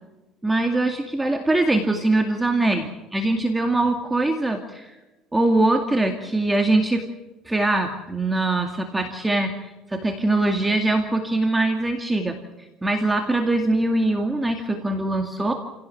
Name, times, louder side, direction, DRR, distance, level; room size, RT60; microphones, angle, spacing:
voice 1, 0.4-5.0 5.3-7.0 7.4-12.4 12.8-15.5, right 2 dB, 10° right, 4 dB, 2.3 m, -22 dB
30.0 x 17.0 x 7.8 m, 1.1 s
cardioid pair, 125°, 0 cm